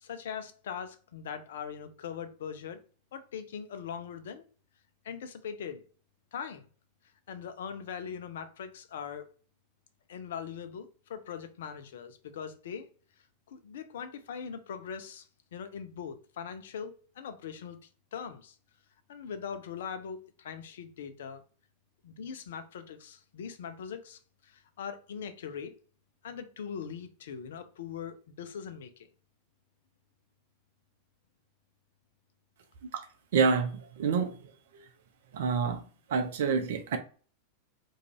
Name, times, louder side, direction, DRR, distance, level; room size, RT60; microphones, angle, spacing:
voice 1, 0.0-2.8 3.1-4.5 5.0-5.8 6.3-6.6 7.3-9.3 10.1-12.9 13.5-15.3 15.5-18.6 19.1-21.4 22.0-25.7 26.2-29.1, left 7 dB, 60° left, 0.4 m, -41 dB
voice 2, 33.3-34.3 34.8-34.9 35.3-35.8 36.1-37.0, right 5 dB, 55° right, 0.5 m, -27 dB
2.4 x 2.3 x 2.8 m
figure-of-eight pair, 90°, 0 cm